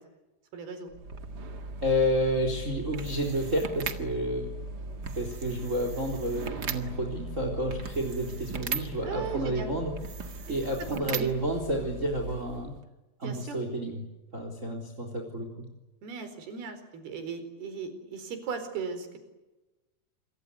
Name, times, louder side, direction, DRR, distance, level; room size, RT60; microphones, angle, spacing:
voice 1, 0.5-0.9 9.0-9.7 10.6-11.3 13.2-13.6 16.0-19.2, right 5 dB, 85° right, 9 dB, 6.3 m, -37 dB
sound 1, 0.9-12.8, right 3 dB, 40° right, 1.5 m, -38 dB
voice 2, 1.8-4.5 5.1-9.9 10.5-12.7 13.2-14.0 14.3-15.7, equal, 20° right, 4 dB, 3.9 m, -30 dB
27.5 x 24.0 x 8.4 m, 1.0 s
omnidirectional pair, 4.3 m